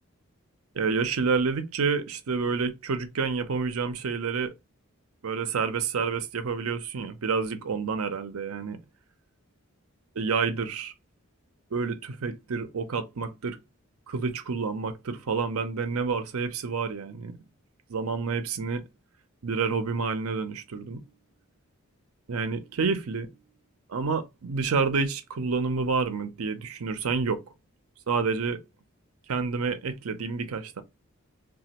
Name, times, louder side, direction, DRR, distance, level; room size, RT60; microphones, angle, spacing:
voice 1, 0.8-4.5 5.2-8.8 10.2-10.9 11.7-13.6 14.1-17.4 17.9-18.8 19.4-21.0 22.3-23.3 23.9-27.4 28.1-28.6 29.3-30.8, right 5 dB, 85° right, 0.6 m, -29 dB
3.2 x 2.3 x 2.8 m
head